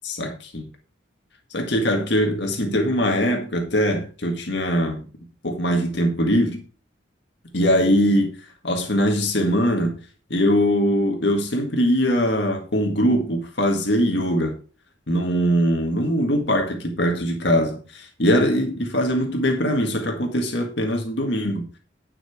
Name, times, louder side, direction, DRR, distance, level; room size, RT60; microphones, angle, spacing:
voice 1, 0.0-0.7 1.5-5.0 5.4-6.6 7.5-8.3 8.6-10.0 10.3-14.5 15.1-21.8, equal, 60° left, 1.8 m, -21 dB
9.9 x 5.9 x 4.9 m
head